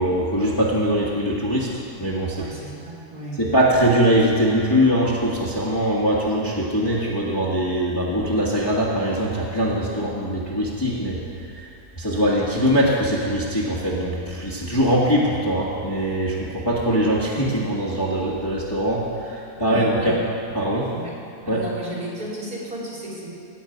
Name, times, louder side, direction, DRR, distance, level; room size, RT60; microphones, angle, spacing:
voice 1, 0.0-1.7 2.0-2.5 3.4-11.2 11.5-11.7 11.9-20.2 20.5-20.9 21.5-21.6, equal, 15° left, -7 dB, 1.5 m, -22 dB
voice 2, 2.4-3.5 9.9-10.0 19.5-20.2 20.9-21.2 21.4-23.3, right 1 dB, 65° right, -7 dB, 3.4 m, -34 dB
16.5 x 8.7 x 5.2 m, 2.4 s
omnidirectional pair, 1.7 m